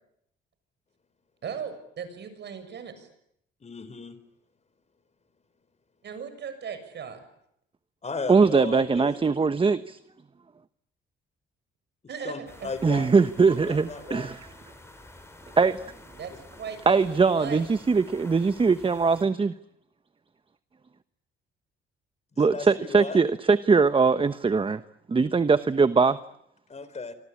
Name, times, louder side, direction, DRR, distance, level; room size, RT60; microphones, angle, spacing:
voice 1, 1.4-3.1 6.0-7.2 12.1-12.7 16.2-16.3 16.6-17.7, right 7 dB, 60° right, 10 dB, 7.1 m, -37 dB
voice 2, 3.6-4.2 8.0-9.2 12.2-13.1 13.5-14.3 22.3-23.2 26.7-27.1, left 4 dB, 35° left, 14 dB, 4.1 m, -36 dB
voice 3, 8.3-10.0 12.8-14.4 15.6-15.8 16.9-19.5 22.4-24.8 25.1-26.2, right 4 dB, 25° right, 12 dB, 1.1 m, -21 dB
sound 1, 12.5-19.2, left 1 dB, 15° left, 7.0 m, -49 dB
27.0 x 25.0 x 8.6 m, 0.76 s
cardioid pair, 90°, 20 cm